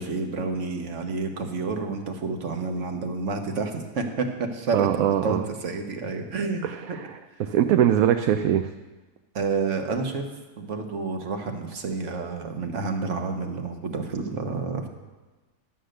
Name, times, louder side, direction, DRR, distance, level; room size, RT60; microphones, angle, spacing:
voice 1, 0.0-7.0 9.3-10.2 10.6-14.9, right 4 dB, 55° right, 5 dB, 1.4 m, -29 dB
voice 2, 4.7-5.4 6.6-8.7, right 10 dB, 70° right, 8 dB, 0.9 m, -22 dB
11.5 x 7.9 x 6.5 m, 1.2 s
omnidirectional pair, 1.7 m